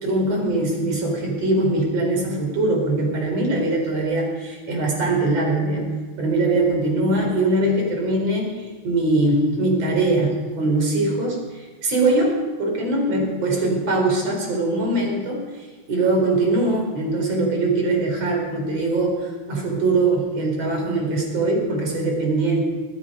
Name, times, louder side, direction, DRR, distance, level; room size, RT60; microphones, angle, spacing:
voice 1, 0.0-5.9 6.2-15.4 15.9-22.6, right 2 dB, 50° right, 1 dB, 5.0 m, -22 dB
20.0 x 13.5 x 5.4 m, 1.3 s
omnidirectional pair, 3.8 m